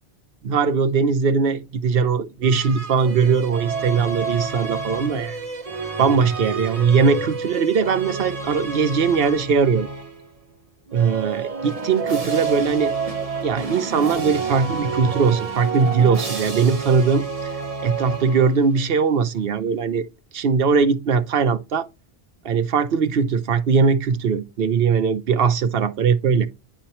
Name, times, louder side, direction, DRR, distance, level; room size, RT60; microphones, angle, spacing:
voice 1, 0.4-5.4 6.0-9.9 10.9-12.9 13.4-17.3 17.8-20.1 20.3-21.9 22.4-26.5, right 5 dB, 65° right, 0.9 m, -20 dB
sound 1, 2.4-10.3 10.9-18.8, right 5 dB, 35° right, 1.0 m, -29 dB
10.0 x 4.3 x 2.9 m
omnidirectional pair, 1.1 m